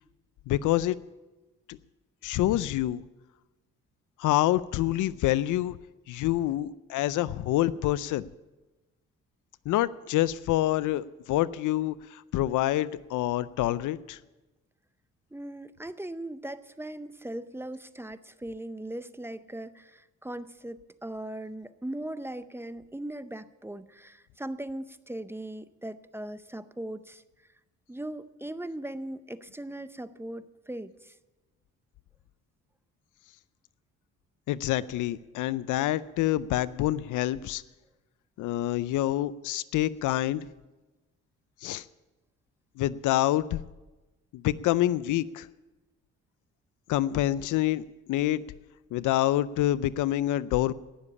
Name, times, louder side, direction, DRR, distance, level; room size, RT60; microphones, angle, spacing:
voice 1, 0.5-1.0 1.7-1.8 2.2-3.0 4.2-5.8 6.1-8.3 9.7-14.2 34.5-37.6 38.4-40.5 41.6-41.8 42.8-43.6 44.3-45.5 46.9-48.4 48.9-50.7, left 14 dB, 80° left, 18 dB, 0.5 m, -27 dB
voice 2, 15.3-27.2 27.9-31.2, right 1 dB, 10° right, 14 dB, 0.6 m, -39 dB
18.0 x 7.1 x 8.6 m, 1.1 s
cardioid pair, 90°, 30 cm